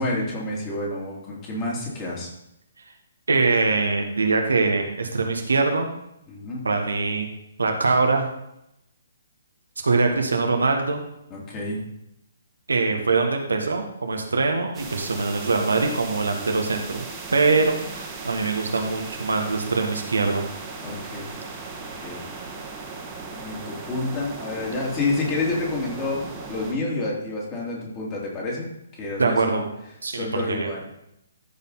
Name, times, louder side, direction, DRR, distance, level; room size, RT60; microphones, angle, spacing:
voice 1, 0.0-2.3 6.3-6.6 11.3-11.8 20.8-21.3 21.8-22.2 23.3-26.2 26.5-28.7 29.0-29.6 30.1-30.9, left 2 dB, 25° left, -3 dB, 3.0 m, -29 dB
voice 2, 3.3-5.9 6.6-7.3 7.6-8.2 9.8-11.0 12.7-17.0 17.3-20.5 29.2-29.7 30.0-30.7, right 3 dB, 65° right, 3 dB, 1.5 m, -23 dB
sound 1, 14.7-26.7, right 4 dB, 20° right, 1.8 m, -37 dB
13.5 x 5.7 x 4.1 m, 0.81 s
figure-of-eight pair, 130°, 0 cm